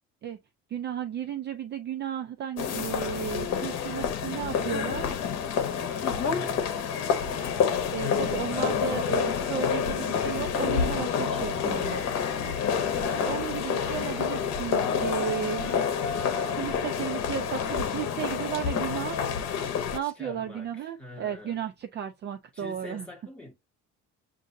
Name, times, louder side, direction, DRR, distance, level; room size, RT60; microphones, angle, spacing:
voice 1, 0.7-5.1 7.9-12.0 12.9-15.8 16.4-19.3 19.9-23.0, right 9 dB, 35° right, 0.4 m, -34 dB
sound 1, 2.6-20.0, left 7 dB, 60° left, 1.0 m, -28 dB
voice 2, 6.0-6.7 8.5-9.2 11.3-12.2 20.0-21.6 22.5-23.5, left 2 dB, 5° left, 2.0 m, -44 dB
sound 2, 10.1-17.4, left 3 dB, 35° left, 1.5 m, -47 dB
7.2 x 2.6 x 2.6 m
cardioid pair, 155°, 30 cm